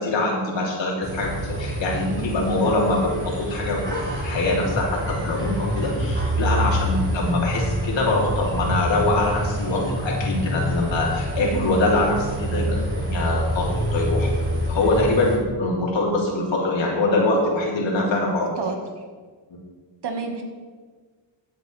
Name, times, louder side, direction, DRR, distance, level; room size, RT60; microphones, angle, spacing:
voice 1, 0.0-14.3 14.7-18.5 19.5-19.6, left 2 dB, 70° left, -3 dB, 3.5 m, -23 dB
sound 1, 1.0-15.4, equal, 25° right, 4.0 m, -26 dB
voice 2, 20.0-20.4, right 5 dB, 60° right, 3 dB, 1.9 m, -29 dB
16.0 x 9.6 x 3.5 m, 1.5 s
cardioid pair, 105°, 46 cm